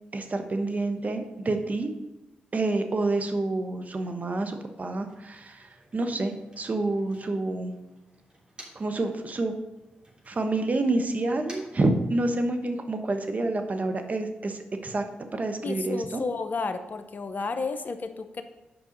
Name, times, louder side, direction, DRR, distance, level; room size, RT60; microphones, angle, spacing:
voice 1, 0.1-1.9 2.5-7.7 8.7-9.5 10.3-15.0 15.3-16.2, right 2 dB, 45° right, 6 dB, 1.1 m, -28 dB
Motor vehicle (road), 4.6-9.1 9.4-12.6, right 1 dB, 25° right, 3.1 m, -54 dB
voice 2, 15.6-18.4, left 4 dB, 50° left, 10 dB, 0.8 m, -32 dB
8.0 x 5.3 x 5.2 m, 0.98 s
supercardioid pair, 40°, 4 cm